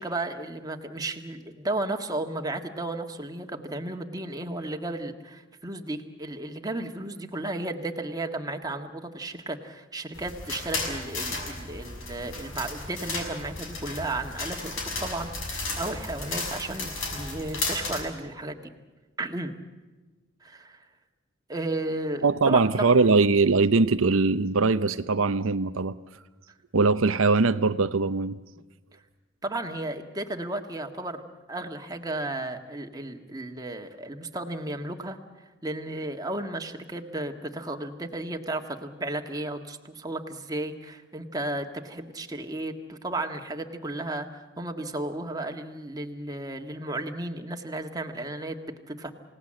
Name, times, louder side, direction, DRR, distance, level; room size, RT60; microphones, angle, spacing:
voice 1, 0.0-18.6 19.2-19.5 20.4-20.8 21.5-22.9 29.4-31.2 31.5-49.1, right 2 dB, 20° right, 4 dB, 1.7 m, -34 dB
sound 1, 10.1-18.0, left 3 dB, 70° left, 5.9 m, -34 dB
voice 2, 22.2-26.0 26.7-28.4, right 4 dB, 85° right, 10 dB, 0.7 m, -21 dB
28.5 x 18.0 x 7.6 m, 1.3 s
head